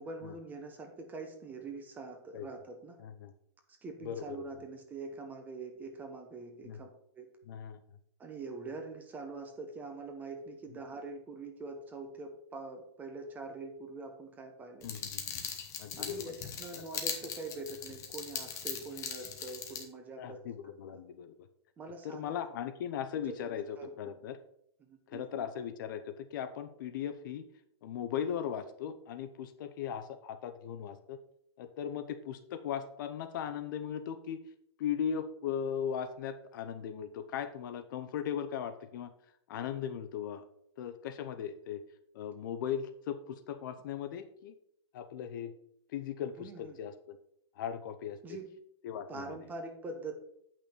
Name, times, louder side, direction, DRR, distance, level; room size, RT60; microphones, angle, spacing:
voice 1, 0.0-3.0 3.8-6.9 7.1-7.3 8.2-14.9 16.0-20.4 20.7-21.0 21.8-22.4 23.3-24.0 24.8-25.5 46.4-46.8 48.2-48.5 49.1-50.1, right 3 dB, 10° right, 5 dB, 0.9 m, -44 dB
voice 2, 3.0-3.3 4.0-4.5 6.6-6.8 7.5-7.8 14.8-15.4 15.8-16.3 20.2-21.3 22.0-24.4 25.1-27.4 27.8-31.2 31.6-34.4 34.8-39.1 39.5-40.5 40.8-41.8 42.1-44.6 44.9-45.5 45.9-47.2 47.6-48.2 48.8-49.4, left 8 dB, 45° left, 10 dB, 0.7 m, -38 dB
sound 1, 14.8-19.8, left 7 dB, 20° left, 1.1 m, -40 dB
8.4 x 5.9 x 4.4 m, 0.71 s
hypercardioid pair, 165°, 15 cm